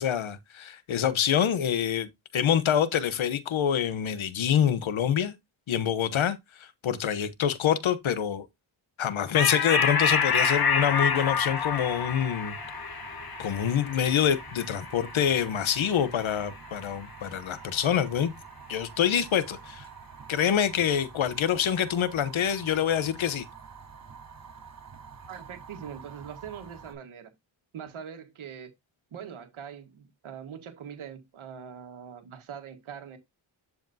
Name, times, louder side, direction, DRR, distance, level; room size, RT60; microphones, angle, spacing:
voice 1, 0.0-5.4 5.7-8.5 9.0-12.6 13.4-18.3 18.7-19.9 20.3-23.4, left 9 dB, 75° left, 1.0 m, -26 dB
sound 1, 9.3-16.2, left 6 dB, 50° left, 1.3 m, -28 dB
Fire, 10.3-26.9, right 6 dB, 45° right, 3.9 m, -47 dB
voice 2, 25.3-27.3 27.7-28.7 29.1-33.2, right 8 dB, 80° right, 1.6 m, -42 dB
10.5 x 4.9 x 2.7 m
cardioid pair, 65°, 47 cm